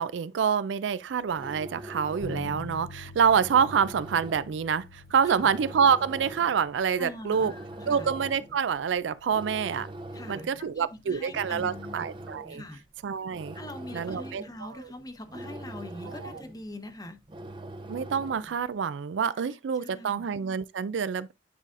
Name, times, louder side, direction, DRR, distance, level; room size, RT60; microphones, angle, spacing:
voice 1, 0.0-7.5 7.9-9.9 10.3-12.6 13.0-13.5 13.9-14.9 16.2-16.3 17.9-21.3, right 7 dB, 75° right, 0.4 m, -27 dB
sound 1, 1.1-18.7, right 1 dB, 25° right, 0.5 m, -44 dB
Bass guitar, 2.2-12.0, left 3 dB, 80° left, 0.7 m, -47 dB
voice 2, 7.0-8.1 10.1-12.0 12.5-12.8 13.5-17.2 19.5-20.2, left 1 dB, 20° left, 0.8 m, -43 dB
8.8 x 4.8 x 2.5 m
head